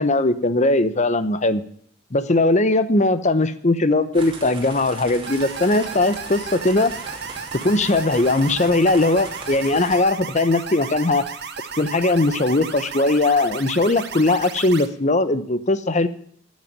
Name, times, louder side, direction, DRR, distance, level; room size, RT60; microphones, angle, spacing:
voice 1, 0.0-1.6 2.1-6.9 7.6-11.2 11.8-16.1, left 2 dB, 35° left, 13 dB, 0.9 m, -19 dB
sound 1, 4.1-10.0, right 3 dB, 25° right, 2.7 m, -38 dB
sound 2, 5.3-14.9, right 6 dB, 55° right, 1.3 m, -34 dB
13.0 x 7.4 x 9.7 m, 0.62 s
head